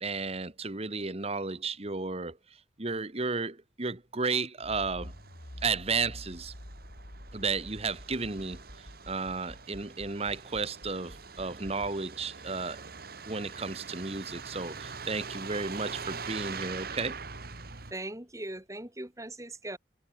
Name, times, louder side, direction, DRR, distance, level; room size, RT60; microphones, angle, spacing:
voice 1, 0.0-2.4 2.8-5.1 5.6-6.5 7.3-8.6 9.1-12.8 13.3-17.2, right 4 dB, 35° right, 1.4 m, -33 dB
Accelerating revving vroom, 4.6-11.9, equal, 70° left, 4.9 m, -48 dB
Truck, 5.0-17.9, right 5 dB, 55° right, 2.5 m, -44 dB
voice 2, 17.9-19.8, right 1 dB, 20° right, 2.9 m, -39 dB
head